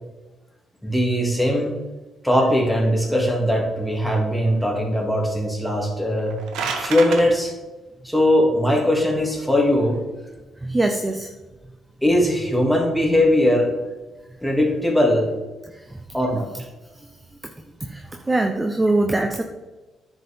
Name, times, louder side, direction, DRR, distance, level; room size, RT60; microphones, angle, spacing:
voice 1, 0.8-1.7 2.2-6.3 6.8-7.5 8.0-10.0 12.0-13.7 14.4-15.3 16.1-16.5, left 1 dB, ahead, -2 dB, 2.7 m, -20 dB
sound 1, 6.1-7.2, right 5 dB, 85° right, 1.1 m, -28 dB
voice 2, 10.6-11.3 15.7-16.0 17.0-17.1 17.8-19.4, right 2 dB, 20° right, 4 dB, 0.8 m, -23 dB
9.9 x 7.3 x 3.7 m, 1.1 s
cardioid pair, 90°, 0 cm